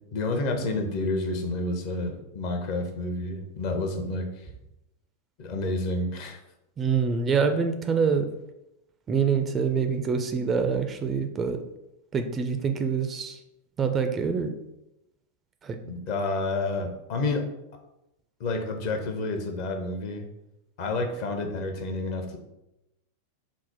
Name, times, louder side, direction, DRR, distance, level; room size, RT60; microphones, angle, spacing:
voice 1, 0.1-4.5 5.4-6.4 15.8-17.5 18.4-20.3 20.8-22.4, left 2 dB, 45° left, 4 dB, 0.7 m, -29 dB
voice 2, 6.8-8.3 9.1-11.6 12.1-13.4 13.8-14.5 15.6-15.8, right 6 dB, 25° right, 6 dB, 0.3 m, -25 dB
4.1 x 2.0 x 4.3 m, 0.88 s
figure-of-eight pair, 90°, 0 cm